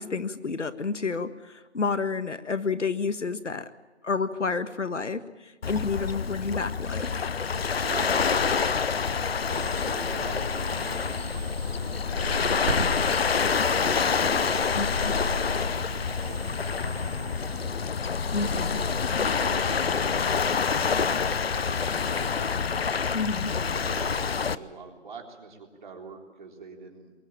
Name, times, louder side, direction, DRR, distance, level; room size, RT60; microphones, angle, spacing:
voice 1, 0.0-3.7 4.0-7.3 14.7-15.1 18.3-18.8 23.1-23.5, left 4 dB, 85° left, 12 dB, 1.7 m, -30 dB
Waves surf, 5.6-24.6, left 5 dB, 55° left, 0.9 m, -27 dB
voice 2, 7.6-11.9 12.2-15.8 16.2-18.9 19.4-22.5 23.6-27.1, right 4 dB, 40° right, 2 dB, 3.9 m, -44 dB
sound 1, 9.5-17.7, right 3 dB, 25° right, 4.4 m, -40 dB
22.0 x 17.5 x 9.0 m, 1.2 s
figure-of-eight pair, 160°, 35 cm